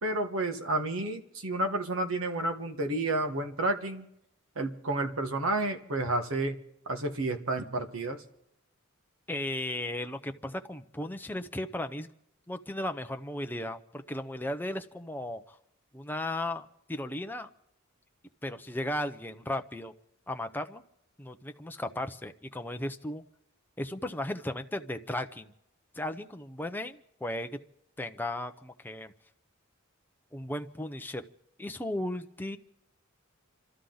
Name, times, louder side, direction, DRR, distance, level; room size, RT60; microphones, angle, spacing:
voice 1, 0.0-4.0 4.5-6.6 6.9-8.2, right 2 dB, 75° right, 7 dB, 1.5 m, -30 dB
voice 2, 9.3-12.1 12.5-15.6 15.9-17.5 18.4-19.9 20.3-20.8 21.2-23.2 23.8-25.5 25.9-27.5 28.0-29.1 30.3-31.2 31.6-32.6, left 1 dB, 10° left, 7 dB, 0.6 m, -35 dB
28.5 x 12.5 x 3.9 m, 0.77 s
head